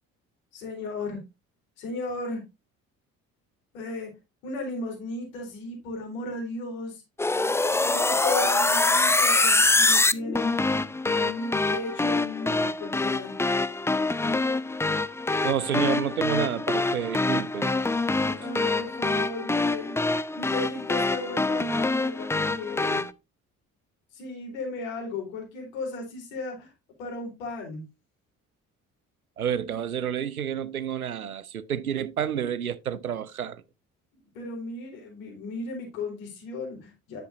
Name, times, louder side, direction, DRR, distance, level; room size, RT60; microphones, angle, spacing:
voice 1, 0.5-1.2 1.8-2.4 3.7-4.1 4.4-7.0 7.8-10.6 11.0-13.4 18.3-23.0 24.1-26.7 27.0-27.8 34.3-37.2, left 2 dB, 70° left, 4.0 m, -35 dB
sound 1, 7.2-23.1, left 3 dB, 5° left, 0.4 m, -25 dB
voice 2, 15.4-17.7 29.4-33.6, right 9 dB, 90° right, 0.5 m, -29 dB
10.5 x 7.9 x 2.6 m
figure-of-eight pair, 45°, 42 cm